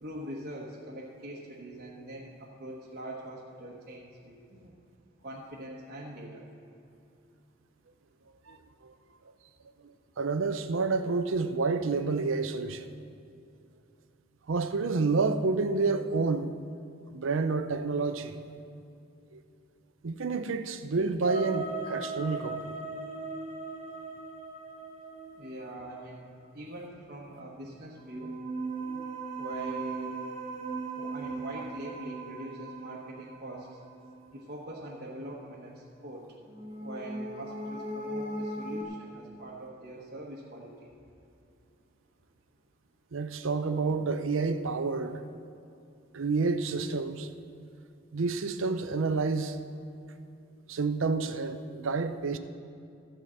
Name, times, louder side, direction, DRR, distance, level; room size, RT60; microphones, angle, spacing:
voice 1, 0.0-4.7 5.2-6.4 25.4-28.3 29.4-30.1 30.9-33.8 34.3-36.3 36.8-40.9, right 1 dB, 45° right, 1.2 m, -43 dB
voice 2, 10.2-12.9 14.5-16.5 17.1-18.4 19.3-19.4 20.0-22.8 28.8-29.0 43.1-45.2 46.1-47.3 48.1-49.6 50.7-52.4, right 4 dB, 75° right, 0.6 m, -29 dB
sound 1, 21.2-26.0 28.0-34.3 36.5-38.8, right 3 dB, 30° right, 1.5 m, -38 dB
13.0 x 5.1 x 7.5 m
head